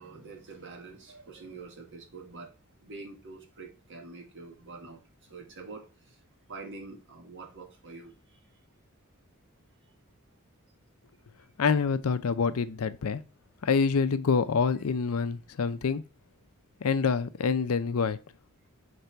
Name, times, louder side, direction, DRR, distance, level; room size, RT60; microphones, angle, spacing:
voice 1, 0.0-2.5 2.8-5.0 5.3-6.2 6.5-8.4, right 3 dB, 60° right, 1.5 m, -46 dB
voice 2, 11.6-13.2 13.6-16.0 16.8-18.2, left 5 dB, 85° left, 0.5 m, -26 dB
6.7 x 3.3 x 4.5 m
head